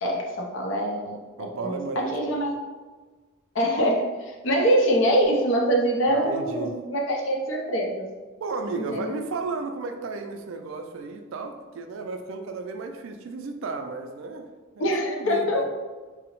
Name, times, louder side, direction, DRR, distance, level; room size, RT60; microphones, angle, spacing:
voice 1, 0.0-2.5 3.5-8.0 8.8-9.1 14.8-15.6, equal, 65° left, 0 dB, 0.5 m, -24 dB
voice 2, 1.4-2.4 6.2-6.8 8.4-14.5 14.8-15.6, right 4 dB, 70° right, 6 dB, 0.3 m, -34 dB
3.6 x 2.0 x 2.9 m, 1.4 s
head